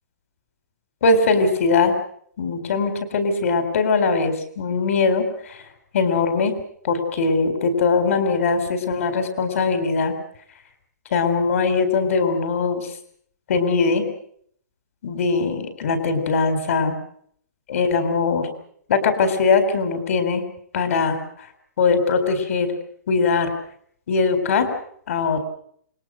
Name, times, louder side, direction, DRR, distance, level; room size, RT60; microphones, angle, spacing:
voice 1, 1.0-1.9 2.4-5.7 5.9-6.5 6.8-10.1 11.1-12.9 13.5-14.1 15.0-16.9 17.7-18.5 18.9-20.4 20.7-21.2 21.8-22.7 23.1-23.5 24.1-24.7 25.1-25.4, left 4 dB, 50° left, 9 dB, 4.4 m, -21 dB
29.0 x 21.0 x 6.6 m, 0.65 s
hypercardioid pair, 170°, 10 cm